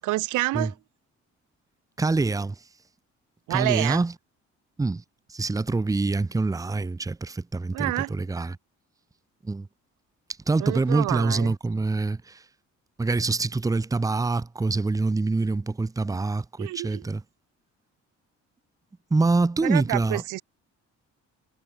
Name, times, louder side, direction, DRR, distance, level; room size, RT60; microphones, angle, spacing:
voice 1, 0.0-0.7 3.5-4.0 7.7-8.1 10.6-11.5 16.6-17.1 19.6-20.4, right 18 dB, 85° right, 0.7 m, -28 dB
voice 2, 2.0-2.5 3.5-4.1 4.8-5.0 5.3-8.6 9.4-9.7 10.5-12.4 13.0-17.2 19.1-20.2, right 3 dB, 10° right, 0.6 m, -25 dB
cardioid pair, 90°, 30 cm